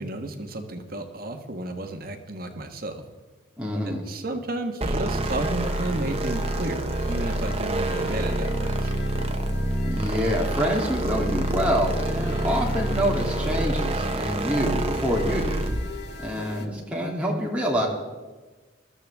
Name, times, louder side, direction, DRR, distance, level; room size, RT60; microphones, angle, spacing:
voice 1, 0.0-3.0 3.8-8.9, right 2 dB, 45° right, 5 dB, 1.3 m, -32 dB
voice 2, 3.6-4.0 9.9-15.7 16.2-17.9, equal, 5° right, -3 dB, 2.7 m, -26 dB
sound 1, 4.8-15.9, right 1 dB, 30° right, 0.9 m, -27 dB
sound 2, 5.2-16.7, left 4 dB, 55° left, 1.3 m, -40 dB
21.5 x 13.5 x 3.5 m, 1.3 s
head